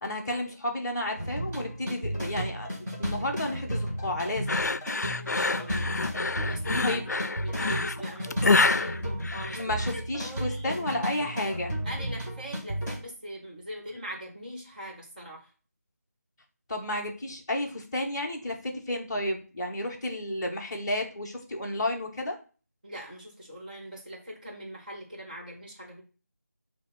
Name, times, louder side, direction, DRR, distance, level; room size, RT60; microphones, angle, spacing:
voice 1, 0.0-2.7 3.0-4.7 6.8-7.1 9.6-11.7 16.7-22.4, left 1 dB, 15° left, -5 dB, 1.0 m, -32 dB
sound 1, 1.2-13.0, equal, 5° right, 0.6 m, -33 dB
sound 2, 4.5-10.0, left 3 dB, 75° left, 0.4 m, -27 dB
voice 2, 5.2-6.0 6.5-7.0 7.4-10.9 11.8-15.5 22.8-26.0, equal, 30° right, -2 dB, 2.1 m, -42 dB
6.9 x 2.9 x 5.7 m, 0.36 s
figure-of-eight pair, 175°, 9 cm